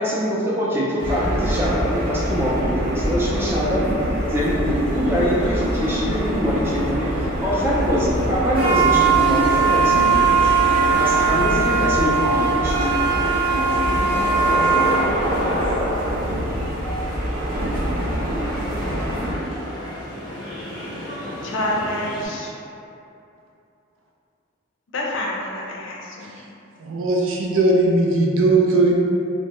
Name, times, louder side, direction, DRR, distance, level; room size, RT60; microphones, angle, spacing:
voice 1, 0.0-4.0 4.3-10.6 11.0-12.9, equal, 10° right, -7 dB, 0.4 m, -23 dB
sound 1, 1.0-19.3, right 3 dB, 40° right, 0.8 m, -21 dB
sound 2, 8.7-22.3, left 1 dB, 20° left, 0.7 m, -31 dB
voice 2, 21.4-22.5 24.9-26.4, left 1 dB, 65° left, -2 dB, 0.4 m, -27 dB
voice 3, 26.8-28.9, right 2 dB, 70° right, -1 dB, 0.4 m, -18 dB
3.0 x 2.2 x 2.9 m, 2.7 s
head